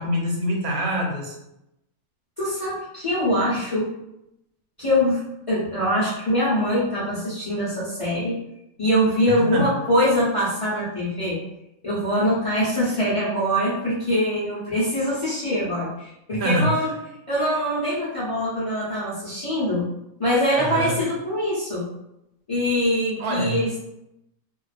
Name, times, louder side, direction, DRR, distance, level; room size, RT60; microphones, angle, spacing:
voice 1, 0.0-1.4 9.4-9.7 16.3-16.8 20.6-21.0 23.2-23.6, equal, 80° right, -1 dB, 1.2 m, -25 dB
voice 2, 2.4-3.9 4.8-5.2 5.5-8.3 8.8-11.4 11.8-16.9 17.3-19.8 20.2-21.8 22.5-23.8, equal, 55° left, -10 dB, 0.3 m, -23 dB
2.4 x 2.3 x 2.4 m, 0.85 s
omnidirectional pair, 1.5 m